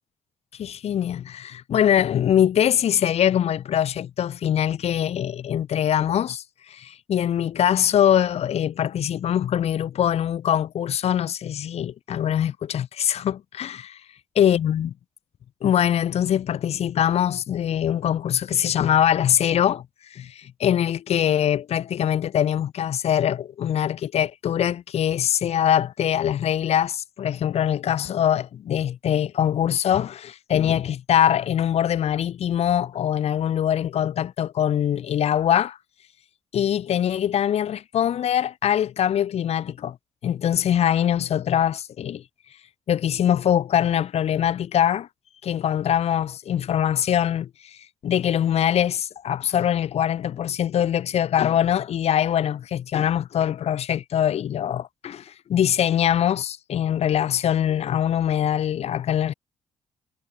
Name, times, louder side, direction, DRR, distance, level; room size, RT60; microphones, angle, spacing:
voice 1, 0.6-14.0 14.4-14.9 15.6-35.8 36.5-40.0 40.2-42.2 42.9-45.1 45.4-59.3, left 10 dB, 65° left, 1.2 m, -23 dB
supercardioid pair, 55°, 11 cm